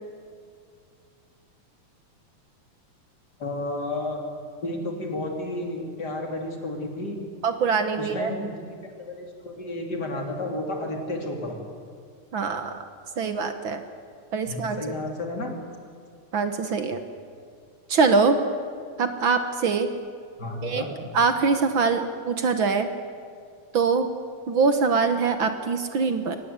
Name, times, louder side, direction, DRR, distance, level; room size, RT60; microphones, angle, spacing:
voice 1, 3.4-4.2 4.6-7.2 8.0-8.5 9.0-11.6 14.4-15.5 20.4-21.0, left 2 dB, 30° left, 2 dB, 3.4 m, -32 dB
voice 2, 7.4-8.3 12.3-12.8 13.2-13.8 14.3-14.8 16.3-17.0 17.9-18.4 19.0-19.9 20.6-20.8 21.1-22.9 23.7-24.1 24.5-26.4, right 4 dB, 55° right, 8 dB, 1.5 m, -23 dB
23.5 x 18.5 x 8.3 m, 2.2 s
omnidirectional pair, 3.5 m